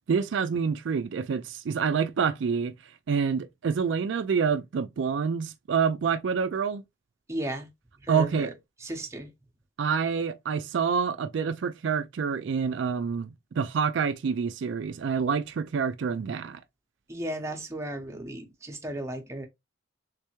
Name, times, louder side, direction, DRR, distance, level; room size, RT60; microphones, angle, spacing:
voice 1, 0.1-6.8 8.1-8.5 9.8-13.3 13.6-16.6, right 6 dB, 65° right, 0.3 m, -27 dB
voice 2, 7.3-7.7 8.1-8.5 8.8-9.3 17.1-19.5, right 1 dB, 15° right, 0.7 m, -35 dB
3.3 x 3.2 x 3.0 m
head